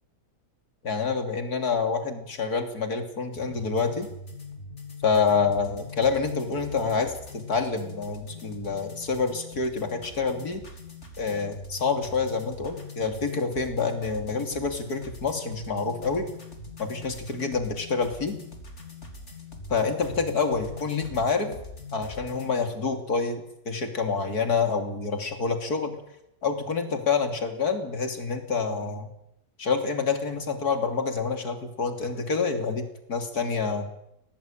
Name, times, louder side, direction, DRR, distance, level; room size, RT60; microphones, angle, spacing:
voice 1, 0.8-4.1 5.0-10.6 11.2-16.3 16.8-18.4 19.7-21.6 21.9-26.0 26.4-29.1 29.6-33.9, left 5 dB, 60° left, 6 dB, 3.5 m, -27 dB
sound 1, 3.3-22.5, left 3 dB, 40° left, 4.1 m, -42 dB
25.5 x 18.5 x 8.8 m, 0.82 s
omnidirectional pair, 1.9 m